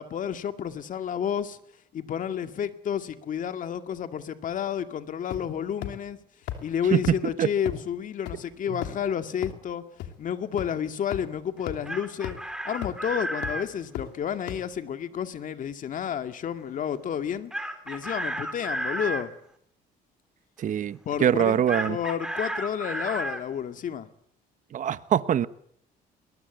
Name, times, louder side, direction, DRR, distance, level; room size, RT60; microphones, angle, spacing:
voice 1, 0.0-1.6 1.9-6.2 6.6-9.8 10.2-12.4 12.6-17.5 17.9-19.3 21.1-24.1, left 8 dB, 50° left, 2.2 m, -31 dB
sound 1, 5.3-5.6 5.8-5.9 6.5-6.6 7.0-7.1 7.7-7.8 8.3-8.4 8.8-9.0 9.4-9.5 10.0-10.1 10.6-10.7 11.1-11.2 11.7-11.8 12.2-12.3 12.8-13.0 13.4-13.5 13.9-14.0 14.5-14.6, left 12 dB, 85° left, 3.1 m, -33 dB
voice 2, 6.9-7.5 8.7-8.8 20.6-22.0 24.7-25.5, right 9 dB, 50° right, 1.1 m, -24 dB
Chicken rooster, 11.6-13.7 17.5-19.3 21.7-23.4, right 1 dB, 5° right, 3.4 m, -32 dB
22.0 x 21.0 x 8.2 m
cardioid pair, 110°, 17 cm